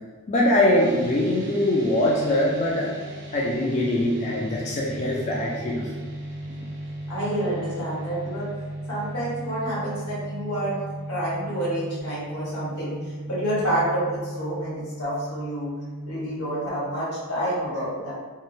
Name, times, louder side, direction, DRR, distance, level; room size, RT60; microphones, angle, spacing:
voice 1, 0.3-2.9 3.3-5.9, left 1 dB, 30° left, -4 dB, 0.3 m, -22 dB
sound 1, 0.7-16.7, right 1 dB, 55° right, 0.6 m, -36 dB
voice 2, 7.1-8.5 8.9-10.8 11.1-15.7 16.1-18.1, right 1 dB, 85° left, -8 dB, 1.4 m, -28 dB
3.5 x 2.0 x 2.6 m, 1.4 s
head